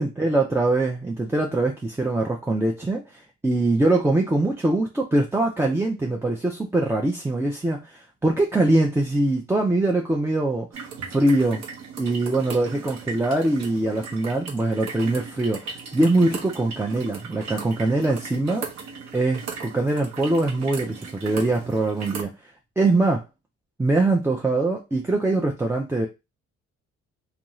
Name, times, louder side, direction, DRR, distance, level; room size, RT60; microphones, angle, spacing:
voice 1, 0.0-10.7 11.1-11.6 12.0-18.7 19.1-22.3 22.8-23.2 23.8-26.1, right 2 dB, 10° right, 0 dB, 0.3 m, -23 dB
sound 1, 10.7-22.2, right 5 dB, 65° right, 0.8 m, -37 dB
2.5 x 2.3 x 3.0 m, 0.25 s
cardioid pair, 90°, 30 cm